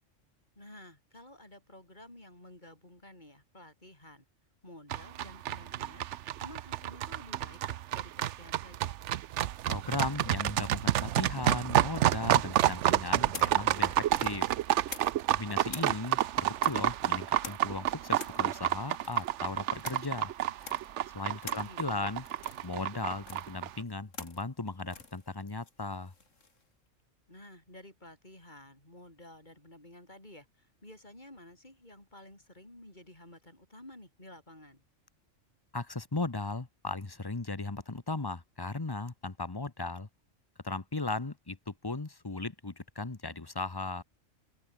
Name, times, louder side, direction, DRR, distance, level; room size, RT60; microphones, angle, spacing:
voice 1, 0.6-4.2 4.6-6.1 6.4-9.0 21.5-22.2 27.3-34.8, left 1 dB, 35° left, 5.6 m, -52 dB
sound 1, 4.9-23.7, right 12 dB, 70° right, 0.9 m, -29 dB
voice 2, 9.7-14.5 15.3-20.3 21.1-22.2 22.6-26.1 35.7-40.1 40.6-44.0, left 3 dB, 20° left, 1.1 m, -37 dB
sound 2, 12.5-15.4 15.7-26.6, left 4 dB, 75° left, 3.1 m, -48 dB
open air
omnidirectional pair, 1.3 m